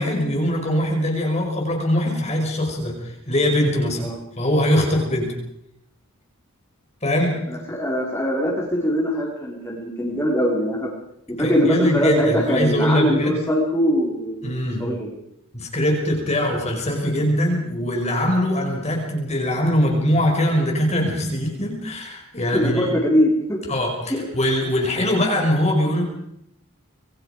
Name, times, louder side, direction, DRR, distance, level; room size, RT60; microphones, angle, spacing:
voice 1, 0.0-4.1 4.4-5.3 7.0-7.4 11.4-13.4 14.4-14.8 15.5-22.9 23.7-26.0, equal, 30° left, 1 dB, 5.6 m, -22 dB
voice 2, 7.5-10.9 11.3-14.5 14.8-15.1 22.5-23.6 24.1-24.2, equal, 10° left, -3 dB, 5.4 m, -22 dB
27.0 x 23.0 x 5.3 m, 0.76 s
head